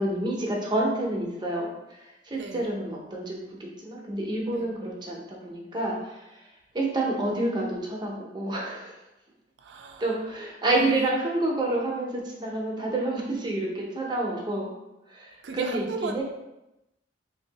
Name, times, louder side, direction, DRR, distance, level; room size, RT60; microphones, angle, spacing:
voice 1, 0.0-6.2 6.7-9.0 10.0-14.7 15.1-16.2, right 2 dB, 25° right, -2 dB, 0.7 m, -29 dB
voice 2, 2.3-2.8 4.5-4.8 9.6-10.1 15.4-16.2, right 4 dB, 70° right, 4 dB, 0.4 m, -36 dB
2.9 x 2.7 x 3.9 m, 0.93 s
head